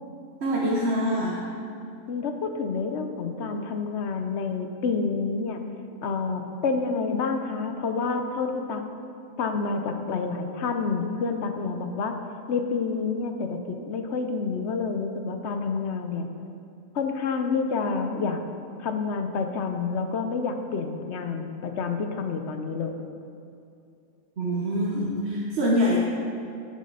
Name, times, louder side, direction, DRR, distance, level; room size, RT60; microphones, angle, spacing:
voice 1, 0.4-1.4 24.4-26.0, equal, 55° right, -5 dB, 1.2 m, -25 dB
voice 2, 2.1-5.6 6.0-8.8 9.4-12.2 12.5-16.3 16.9-18.4 18.8-22.9, left 4 dB, 60° left, 6 dB, 0.9 m, -28 dB
8.5 x 7.4 x 5.5 m, 2.6 s
omnidirectional pair, 1.4 m